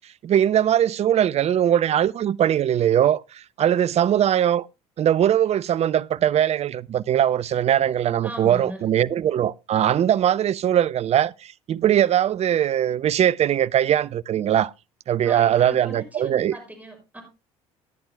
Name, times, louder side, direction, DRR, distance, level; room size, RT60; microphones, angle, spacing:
voice 1, 0.2-4.7 5.0-14.7 15.1-16.6, right 10 dB, 45° right, 0.5 m, -21 dB
voice 2, 8.2-8.9 15.2-17.2, right 1 dB, 10° right, 6.5 m, -38 dB
18.0 x 10.5 x 2.2 m
hypercardioid pair, 60°, 15 cm